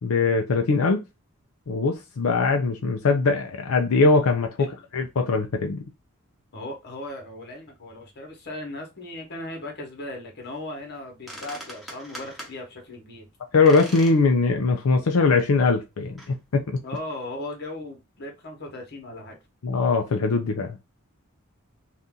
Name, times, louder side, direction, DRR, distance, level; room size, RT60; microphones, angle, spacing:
voice 1, 0.0-1.0 1.7-4.5 4.9-5.8 13.5-16.8 19.6-20.8, left 4 dB, 90° left, 0.5 m, -21 dB
voice 2, 6.5-13.3 16.8-19.4, left 1 dB, 55° left, 1.2 m, -37 dB
sound 1, 11.0-11.1 11.3-12.6 13.7-14.2 14.6-14.7 15.4-15.5 16.2-16.3, equal, ahead, 1.0 m, -40 dB
2.7 x 2.5 x 3.6 m
head